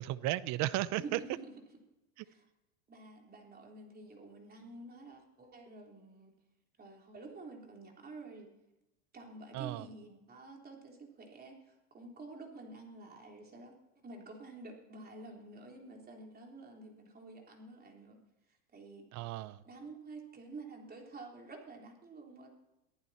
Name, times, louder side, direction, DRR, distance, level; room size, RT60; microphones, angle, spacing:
voice 1, 0.0-1.2 9.5-9.9 19.1-19.6, right 15 dB, 35° right, 0.7 m, -34 dB
voice 2, 0.9-1.5 2.2-2.5 2.9-6.3 6.8-8.5 9.1-18.2 18.5-19.1 19.6-22.5, right 3 dB, 20° right, 3.6 m, -50 dB
23.0 x 14.5 x 4.3 m
supercardioid pair, 130°, 47 cm